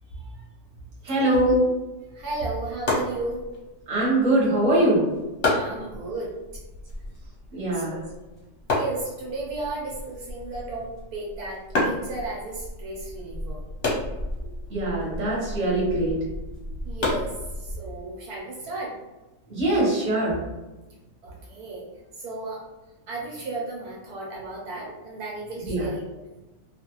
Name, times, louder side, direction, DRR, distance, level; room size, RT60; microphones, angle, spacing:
voice 1, 1.0-1.7 3.9-5.1 7.5-8.0 14.7-16.2 19.5-20.4 25.7-25.8, right 1 dB, 35° right, -5 dB, 0.9 m, -22 dB
voice 2, 2.1-3.4 5.5-6.6 7.0-7.1 7.7-8.0 8.7-13.9 16.8-18.9 21.2-21.8 22.2-22.6 23.1-26.0, right 2 dB, 70° right, -3 dB, 1.1 m, -34 dB
sound 1, 2.2-18.0, left 2 dB, 45° left, 0.8 m, -32 dB
2.4 x 2.4 x 2.9 m, 1.1 s
omnidirectional pair, 1.7 m